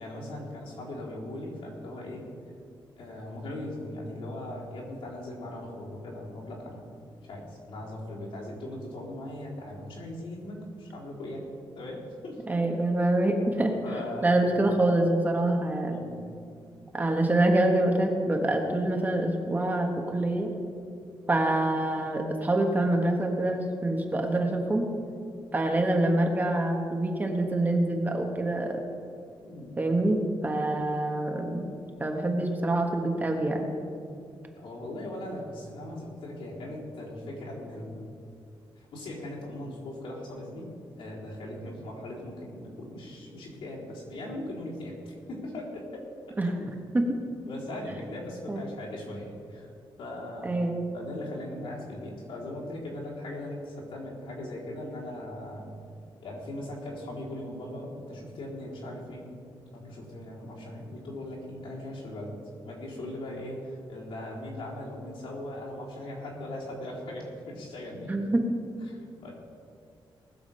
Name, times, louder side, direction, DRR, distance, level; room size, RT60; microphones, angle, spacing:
voice 1, 0.0-2.3 3.0-7.0 7.2-11.5 11.7-12.6 13.8-14.5 15.8-16.3 29.4-29.7 34.6-38.1 38.8-40.7 41.0-46.1 46.4-46.7 47.5-49.7 50.0-50.6 50.9-55.7 56.2-59.3 59.7-62.3 62.6-68.2 68.9-69.3, left 1 dB, 80° left, -5 dB, 4.1 m, -39 dB
voice 2, 12.5-13.7 14.2-16.0 16.9-20.5 21.3-24.9 25.5-28.8 29.8-31.7 32.0-33.7 46.4-46.5 46.9-47.2 48.5-48.6 50.4-50.9 68.1-68.4, right 1 dB, 20° right, 2 dB, 1.3 m, -26 dB
19.5 x 7.3 x 5.6 m, 2.4 s
wide cardioid pair, 155°, 9 cm